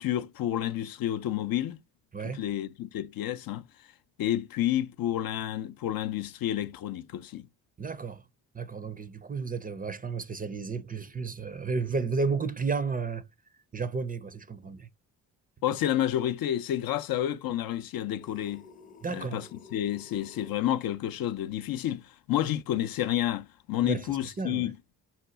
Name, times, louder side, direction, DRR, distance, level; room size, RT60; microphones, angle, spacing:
voice 1, 0.0-1.8 2.2-3.7 4.2-7.5 15.6-18.7 19.1-24.8, left 12 dB, 65° left, 0.5 m, -30 dB
voice 2, 2.1-2.4 7.8-8.2 8.5-13.2 13.7-14.9 19.0-19.4 23.8-24.7, right 4 dB, 25° right, 0.5 m, -32 dB
sound 1, 18.2-20.6, left 4 dB, 20° left, 0.6 m, -52 dB
5.7 x 2.3 x 3.9 m
supercardioid pair, 60°, 39 cm